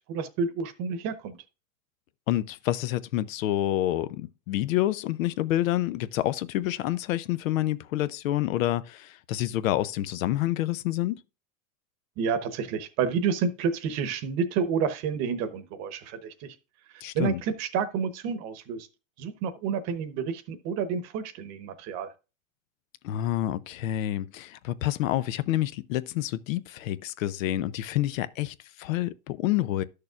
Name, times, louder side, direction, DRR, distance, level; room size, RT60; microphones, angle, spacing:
voice 1, 0.1-1.4 12.2-16.6 17.1-18.9 19.2-22.1, right 6 dB, 40° right, 1.0 m, -29 dB
voice 2, 2.3-11.2 17.0-17.4 23.0-29.8, left 14 dB, 65° left, 0.7 m, -28 dB
12.0 x 6.6 x 2.4 m
supercardioid pair, 140°, 42 cm